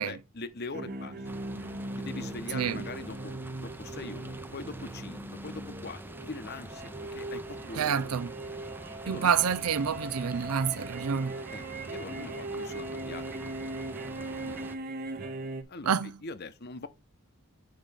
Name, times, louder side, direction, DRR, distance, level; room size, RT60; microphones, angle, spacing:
voice 1, 0.0-1.4 2.0-8.2 9.0-9.4 11.5-11.6 11.9-13.4 14.2-14.8 15.7-15.9 16.2-16.9, left 3 dB, 45° left, 0.9 m, -42 dB
sound 1, 0.7-15.6, right 2 dB, 40° right, 1.0 m, -40 dB
sound 2, 1.2-14.8, right 1 dB, 10° right, 0.6 m, -45 dB
voice 2, 2.5-2.8 7.8-8.3 9.1-11.4 15.9-16.2, right 7 dB, 80° right, 0.5 m, -28 dB
8.9 x 5.2 x 3.5 m
head